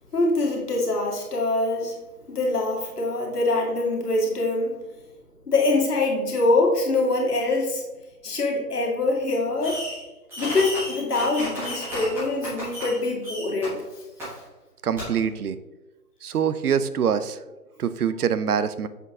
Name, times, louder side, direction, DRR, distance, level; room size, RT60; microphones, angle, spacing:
voice 1, 0.1-2.0 2.3-4.8 5.5-7.8 8.2-9.8 10.4-13.8, left 2 dB, 70° left, -1 dB, 2.1 m, -24 dB
Fireworks, 9.6-10.0 10.3-13.0 13.2-13.7 14.2-14.3 15.0-15.1, left 1 dB, 5° right, 1.3 m, -33 dB
voice 2, 14.8-15.6 16.2-17.4 17.8-18.9, right 7 dB, 70° right, 13 dB, 0.6 m, -24 dB
6.9 x 4.2 x 3.5 m, 1.1 s
figure-of-eight pair, 150°, 48 cm